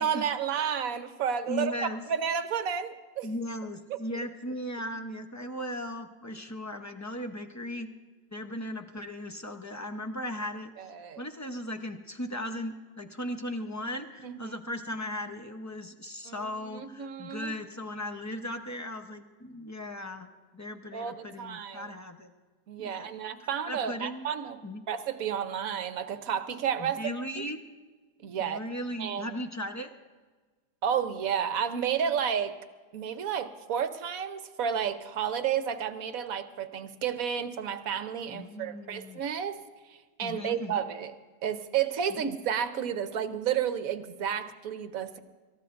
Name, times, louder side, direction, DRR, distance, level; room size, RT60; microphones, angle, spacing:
voice 1, 0.0-3.3 3.9-4.3 10.8-11.2 14.2-14.6 16.2-17.6 20.9-21.9 22.7-24.6 24.9-27.4 28.2-28.6 29.0-29.4 30.8-32.5 32.9-39.6 39.9-41.1 41.4-45.2, right 8 dB, 65° right, 10 dB, 1.2 m, -31 dB
voice 2, 1.5-2.0 3.2-7.9 8.3-20.3 20.5-22.3 22.8-23.1 23.7-24.2 24.6-24.8 26.8-27.6 28.4-29.9 38.3-39.2 40.2-40.9, left 1 dB, 25° left, 5 dB, 0.3 m, -37 dB
27.0 x 14.0 x 2.5 m, 1.4 s
omnidirectional pair, 1.7 m